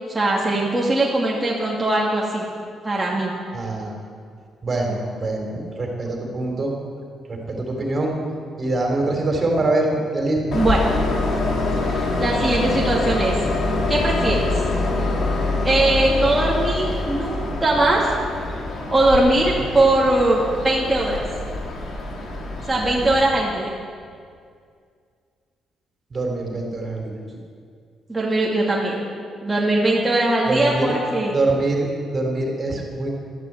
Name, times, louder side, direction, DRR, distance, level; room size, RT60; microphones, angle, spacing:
voice 1, 0.1-2.4 2.8-3.3 10.5-10.8 11.8-13.3 13.9-14.6 15.6-18.1 18.9-21.2 22.7-23.7 28.1-29.0 29.4-31.3, right 2 dB, 15° right, -5 dB, 2.6 m, -20 dB
voice 2, 3.5-3.9 4.6-6.7 7.3-8.2 8.6-10.5 26.1-27.2 30.5-30.9 31.3-33.1, right 2 dB, 40° right, 1 dB, 3.8 m, -24 dB
Train, 10.5-23.1, left 2 dB, 55° left, 3.2 m, -25 dB
12.5 x 11.5 x 8.2 m, 2.2 s
cardioid pair, 90°, 0 cm